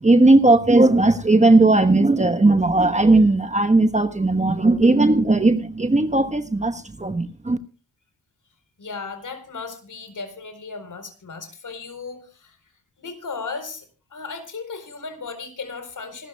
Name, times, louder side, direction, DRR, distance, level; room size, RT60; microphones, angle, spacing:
voice 1, 0.0-7.6, right 2 dB, 20° right, 1.2 m, -17 dB
voice 2, 8.8-12.6 13.0-16.3, left 4 dB, 55° left, 4.2 m, -36 dB
25.5 x 13.0 x 2.3 m
cardioid pair, 75°, 36 cm